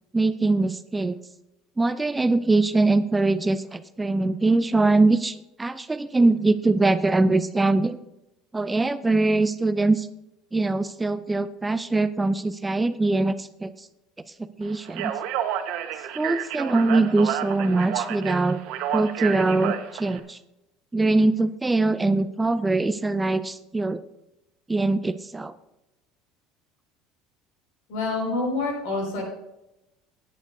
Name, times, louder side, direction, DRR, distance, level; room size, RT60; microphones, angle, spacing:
voice 1, 0.1-1.2 1.8-8.0 8.5-10.1 10.5-13.7 14.6-15.1 16.2-18.6 18.9-20.4 20.9-24.0 24.7-25.5, right 2 dB, 10° right, 12 dB, 0.4 m, -22 dB
Speech, 14.9-20.2, right 10 dB, 65° right, 1.2 m, -30 dB
voice 2, 27.9-29.2, left 3 dB, 75° left, 1 dB, 5.0 m, -27 dB
18.5 x 9.4 x 2.7 m, 0.92 s
cardioid pair, 155°, 0 cm